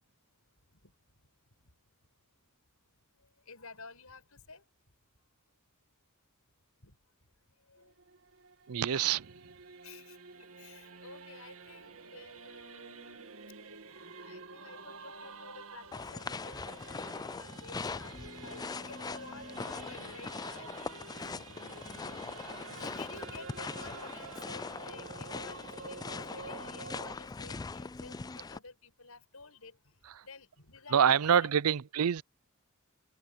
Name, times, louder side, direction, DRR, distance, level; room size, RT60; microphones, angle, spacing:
voice 1, 3.5-4.6 6.8-6.9 7.7-7.9 9.8-10.2 10.6-13.4 14.2-18.2 18.4-21.5 21.8-22.4 22.6-29.8 30.2-31.3, left 4 dB, 80° left, 6.9 m, -52 dB
Singing / Musical instrument, 7.8-27.2, right 4 dB, 70° right, 1.9 m, -49 dB
voice 2, 8.7-9.3 30.2-30.3 30.9-32.2, right 8 dB, 90° right, 0.5 m, -26 dB
sound 1, 15.9-28.6, left 4 dB, 20° left, 0.3 m, -41 dB
head